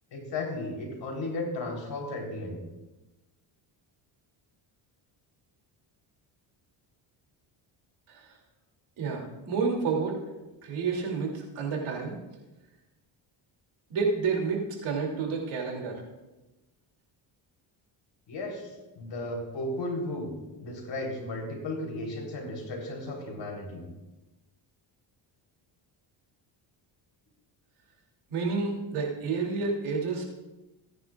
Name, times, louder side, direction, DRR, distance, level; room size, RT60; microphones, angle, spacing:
voice 1, 0.1-2.6 18.3-20.3 20.6-23.8, left 2 dB, 60° left, 1 dB, 3.7 m, -35 dB
voice 2, 9.0-10.2 10.6-12.2 13.9-16.0 28.3-30.2, right 4 dB, 75° right, -1 dB, 2.9 m, -30 dB
18.5 x 9.9 x 2.4 m, 1.1 s
cardioid pair, 85°, 50 cm